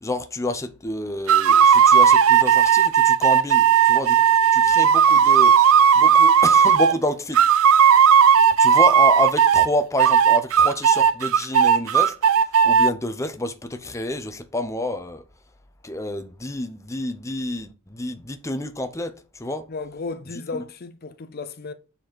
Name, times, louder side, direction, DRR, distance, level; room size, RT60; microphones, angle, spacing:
voice 1, 0.0-7.4 8.6-12.1 12.6-15.2 15.8-19.7 20.5-20.6, left 1 dB, 15° left, 0.8 m, -28 dB
sound 1, 1.3-7.0 7.3-9.7 10.0-12.9, right 8 dB, 75° right, 0.5 m, -15 dB
voice 2, 19.7-21.7, left 3 dB, 45° left, 0.6 m, -34 dB
7.6 x 4.4 x 6.0 m
head